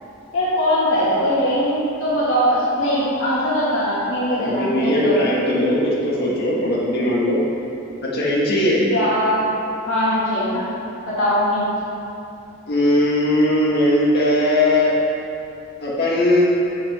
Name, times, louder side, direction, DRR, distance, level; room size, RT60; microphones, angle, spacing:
voice 1, 0.3-5.2 8.9-9.4 9.9-10.6 11.0-11.7, equal, 70° left, -10 dB, 2.0 m, -21 dB
voice 2, 4.4-7.4 8.0-8.8 12.7-15.0 15.8-16.4, left 1 dB, 50° left, -6 dB, 1.8 m, -19 dB
8.4 x 7.7 x 3.6 m, 2.7 s
head